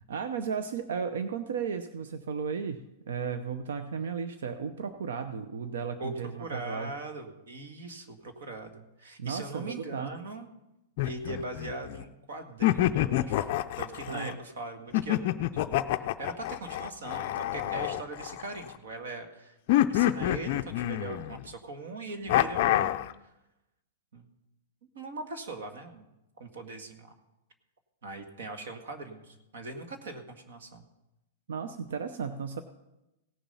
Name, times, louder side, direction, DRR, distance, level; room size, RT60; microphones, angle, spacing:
voice 1, 0.1-6.9 9.2-10.2 14.1-14.4 31.5-32.6, right 6 dB, 85° right, 9 dB, 0.8 m, -34 dB
voice 2, 6.0-10.5 11.0-13.5 13.8-15.2 15.5-19.6 19.9-22.9 24.1-24.3 24.9-26.1 26.4-27.1 28.0-30.8, right 2 dB, 60° right, 7 dB, 1.8 m, -40 dB
sound 1, 11.0-12.0 12.6-14.3 14.9-18.7 19.7-21.5 22.3-23.1, left 13 dB, 35° left, 0.4 m, -27 dB
17.0 x 7.2 x 5.5 m, 0.94 s
supercardioid pair, 180°, 0 cm